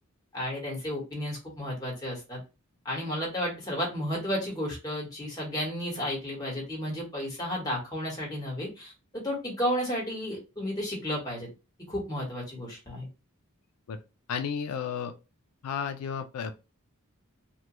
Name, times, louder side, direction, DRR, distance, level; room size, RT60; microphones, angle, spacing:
voice 1, 0.3-2.4 2.8-11.5 11.9-13.1, equal, 15° left, 1.2 m, -32 dB
voice 2, 14.3-15.1 15.6-16.5, left 7 dB, 85° left, 0.4 m, -33 dB
3.1 x 2.2 x 2.9 m
head